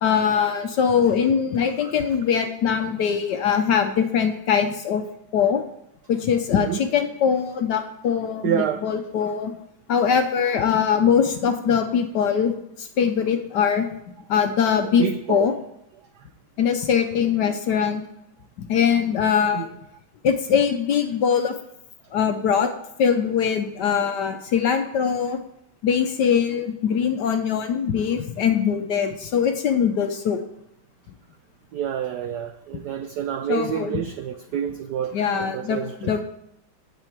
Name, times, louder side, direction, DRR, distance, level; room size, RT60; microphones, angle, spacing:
voice 1, 0.0-5.0 5.3-5.6 6.1-9.6 9.9-13.9 14.3-15.5 16.6-18.0 18.7-19.7 20.2-21.6 22.1-22.7 23.0-25.4 25.8-30.4 33.5-34.0 35.1-36.2, left 7 dB, 70° left, 7 dB, 1.1 m, -22 dB
voice 2, 8.4-8.8 15.0-15.5 19.5-19.7 31.7-35.1 35.5-36.1, right 9 dB, 80° right, 9 dB, 0.9 m, -28 dB
9.2 x 7.8 x 4.5 m, 0.76 s
omnidirectional pair, 2.3 m